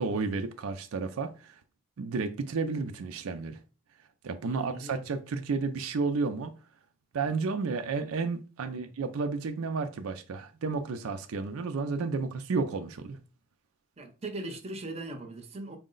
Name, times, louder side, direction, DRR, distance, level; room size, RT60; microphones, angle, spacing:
voice 1, 0.0-1.6 2.0-3.6 4.2-6.6 7.1-13.2, right 4 dB, 85° right, 0.4 m, -32 dB
voice 2, 4.4-5.0 8.6-8.9 14.0-15.8, right 2 dB, 30° right, 0.6 m, -40 dB
4.6 x 2.1 x 3.7 m
head